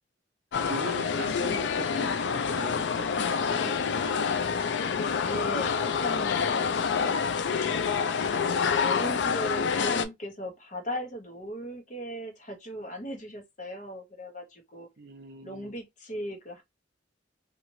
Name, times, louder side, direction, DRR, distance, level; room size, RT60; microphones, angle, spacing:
sound 1, 0.5-10.0, left 6 dB, 70° left, 0.4 m, -27 dB
voice 1, 0.7-4.5 4.7-4.9 15.0-15.7, right 3 dB, 55° right, 0.6 m, -41 dB
voice 2, 5.0-7.9 8.8-14.9 15.4-16.6, equal, 40° left, 0.9 m, -38 dB
3.0 x 2.5 x 2.7 m
head